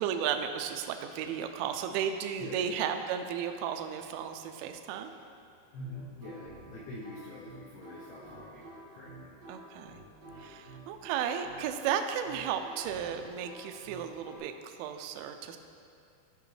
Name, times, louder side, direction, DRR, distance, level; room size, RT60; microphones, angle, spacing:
voice 1, 0.0-5.1 9.5-10.0 10.4-15.6, right 8 dB, 85° right, 6 dB, 2.6 m, -34 dB
voice 2, 2.4-2.8 5.7-9.3, left 1 dB, 85° left, -7 dB, 2.2 m, -45 dB
sound 1, 5.8-14.4, right 2 dB, 70° right, 1.6 m, -50 dB
14.0 x 5.0 x 3.2 m, 2.4 s
omnidirectional pair, 5.8 m